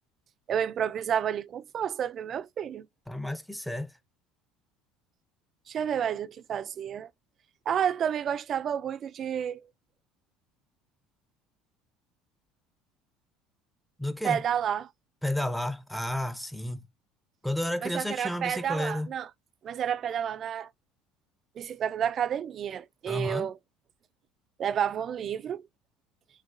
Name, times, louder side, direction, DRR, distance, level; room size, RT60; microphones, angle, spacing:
voice 1, 0.5-2.9 5.7-7.1 7.7-9.7 14.2-14.9 17.8-19.3 19.6-20.7 21.6-23.6 24.6-25.7, right 9 dB, 45° right, 0.4 m, -30 dB
voice 2, 3.1-3.9 14.0-14.4 15.2-16.8 17.4-19.1 23.1-23.5, left 1 dB, 5° left, 0.8 m, -32 dB
4.7 x 2.8 x 2.6 m
hypercardioid pair, 70°, 0 cm